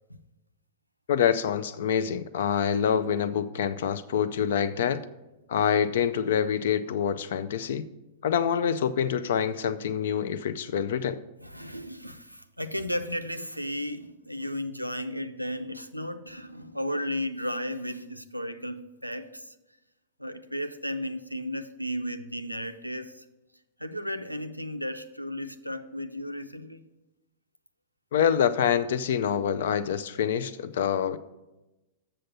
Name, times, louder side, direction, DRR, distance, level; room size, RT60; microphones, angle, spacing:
voice 1, 1.1-5.0 5.5-7.9 8.2-11.2 28.1-31.2, left 8 dB, 55° left, 0.4 m, -26 dB
voice 2, 11.4-19.5 20.2-23.2 23.8-26.8, equal, 90° right, 0.5 m, -34 dB
7.6 x 6.8 x 5.3 m
figure-of-eight pair, 95°, 0 cm